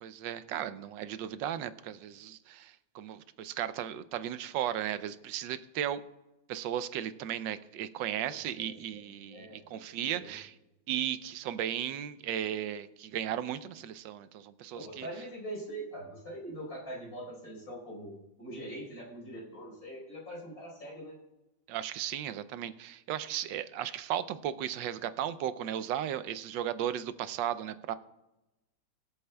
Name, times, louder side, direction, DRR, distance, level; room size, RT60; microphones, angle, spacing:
voice 1, 0.0-6.0 6.5-10.5 10.9-15.1 21.7-27.9, right 10 dB, 90° right, 13 dB, 1.3 m, -35 dB
voice 2, 8.6-10.3 14.7-21.1, right 1 dB, 50° left, -3 dB, 5.1 m, -43 dB
23.5 x 8.4 x 2.3 m, 0.97 s
omnidirectional pair, 1.9 m